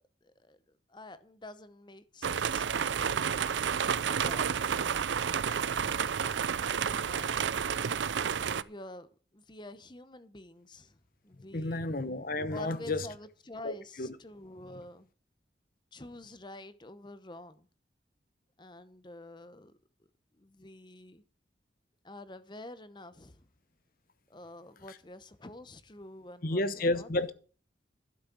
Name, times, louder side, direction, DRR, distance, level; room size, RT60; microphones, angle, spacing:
voice 1, 0.2-3.1 4.1-5.0 5.5-7.4 8.3-11.9 12.5-15.1 15.9-17.7 18.6-19.7 20.3-21.2 22.0-23.5 24.3-27.1, left 1 dB, 25° left, 0.9 m, -48 dB
sound 1, 2.2-8.6, right 7 dB, 85° right, 0.5 m, -30 dB
voice 2, 11.5-13.1 13.6-14.2 24.9-25.0 26.4-27.3, left 2 dB, 50° left, 0.9 m, -31 dB
12.0 x 6.4 x 7.5 m
head